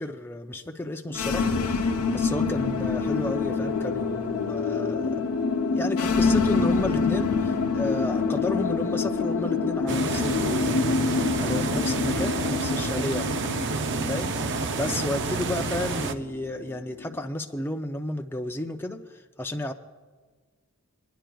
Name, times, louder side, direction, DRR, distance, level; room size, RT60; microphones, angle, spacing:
voice 1, 0.0-5.3 5.7-13.3 14.1-14.3 14.7-19.7, left 2 dB, 10° left, 4 dB, 0.4 m, -32 dB
sound 1, 1.1-17.2, left 4 dB, 75° left, 0.7 m, -27 dB
sound 2, 9.9-16.1, right 4 dB, 55° right, 0.5 m, -29 dB
26.0 x 10.0 x 2.3 m, 1.4 s
head